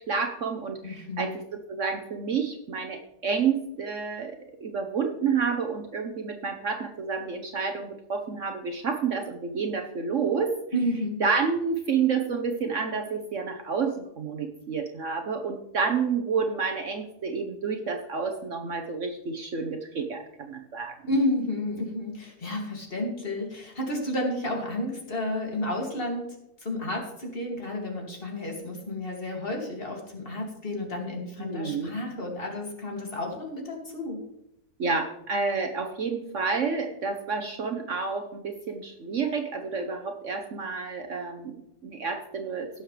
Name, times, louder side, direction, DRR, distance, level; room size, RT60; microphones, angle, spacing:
voice 1, 0.1-4.3 4.6-10.5 11.2-21.0 31.4-31.9 34.8-41.5 41.8-42.7, right 5 dB, 55° right, 4 dB, 1.2 m, -29 dB
voice 2, 0.8-1.4 10.7-11.2 21.1-26.2 26.6-34.2, left 1 dB, 35° left, 0 dB, 2.6 m, -31 dB
17.5 x 7.3 x 3.3 m, 0.85 s
omnidirectional pair, 1.7 m